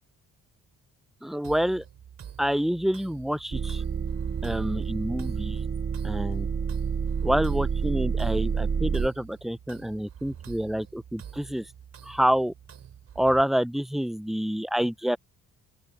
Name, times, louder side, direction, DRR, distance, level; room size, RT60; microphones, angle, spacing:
voice 1, 1.2-1.8 2.4-3.8 4.4-5.6 6.0-6.5 7.2-11.7 12.0-12.5 13.2-15.2, equal, ahead, 0.7 m, -27 dB
sound 1, 1.4-13.4, right 9 dB, 60° right, 3.7 m, -47 dB
sound 2, 3.5-9.1, right 6 dB, 35° right, 1.5 m, -28 dB
open air
cardioid pair, 90°, 30 cm